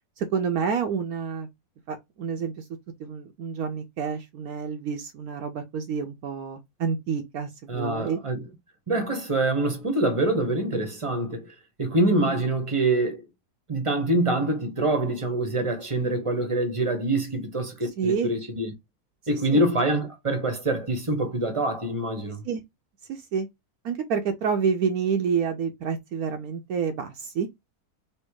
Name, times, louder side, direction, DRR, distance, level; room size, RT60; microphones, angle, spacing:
voice 1, 0.2-1.5 1.9-2.6 3.0-8.2 18.0-18.3 19.3-19.7 22.4-22.6 23.1-23.5 23.8-27.5, right 6 dB, 70° right, 1.1 m, -28 dB
voice 2, 7.7-8.4 8.9-13.2 13.7-18.7 19.3-22.4, right 2 dB, 25° right, 0.9 m, -25 dB
3.3 x 2.9 x 4.6 m
omnidirectional pair, 1.7 m